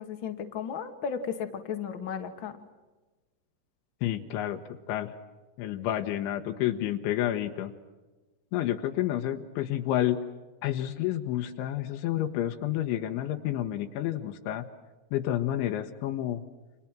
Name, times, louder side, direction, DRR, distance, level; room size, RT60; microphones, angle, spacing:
voice 1, 0.0-2.6, left 7 dB, 40° left, 6 dB, 1.8 m, -34 dB
voice 2, 4.0-5.1 5.6-7.7 8.5-10.2 10.6-14.7 15.1-16.4, left 12 dB, 85° left, 5 dB, 3.6 m, -30 dB
30.0 x 27.5 x 6.1 m, 1.2 s
omnidirectional pair, 5.3 m